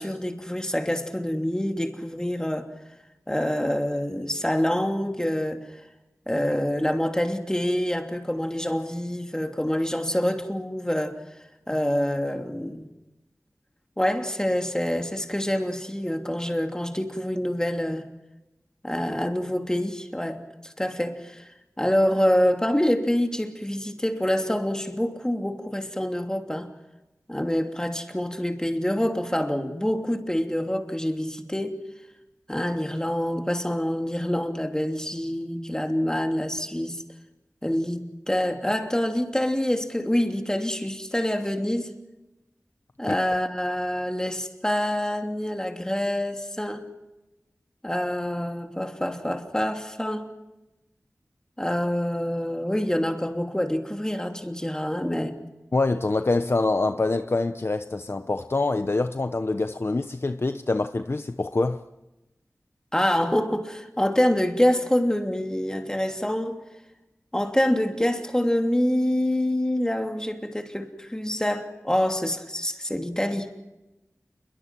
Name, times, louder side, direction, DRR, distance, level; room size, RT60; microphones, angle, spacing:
voice 1, 0.0-2.7 3.3-5.7 6.3-11.2 11.7-12.9 14.0-18.1 18.8-21.5 21.8-26.7 27.3-31.8 32.5-37.0 37.6-41.9 43.0-46.9 47.8-50.3 51.6-55.4 62.9-66.6 67.3-73.5, left 1 dB, 10° left, 3.0 m, -26 dB
voice 2, 55.7-61.8, left 3 dB, 50° left, 0.8 m, -25 dB
28.0 x 23.0 x 6.1 m
wide cardioid pair, 55°, 5 cm